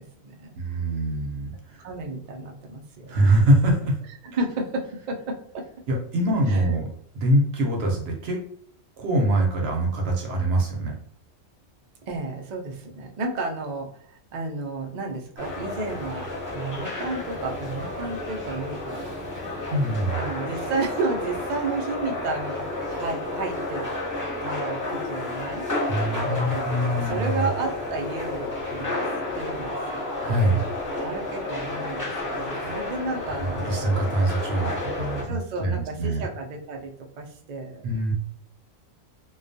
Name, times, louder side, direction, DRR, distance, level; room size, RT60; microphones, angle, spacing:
voice 1, 0.0-0.5 1.8-3.2 4.2-5.7 6.5-6.8 12.1-16.3 16.5-19.0 20.1-23.9 24.4-29.0 29.3-30.2 31.0-33.8 35.2-37.8, right 3 dB, 85° right, 1 dB, 0.3 m, -32 dB
voice 2, 0.6-1.8 3.1-4.0 5.9-6.9 7.1-8.4 9.0-10.9 19.7-20.2 25.9-27.4 30.2-30.6 32.5-32.7 33.2-36.2 37.8-38.1, right 1 dB, 60° right, 1 dB, 0.8 m, -24 dB
sound 1, 15.4-35.2, left 2 dB, 15° left, 0.8 m, -31 dB
2.2 x 2.2 x 2.6 m, 0.63 s
omnidirectional pair, 1.3 m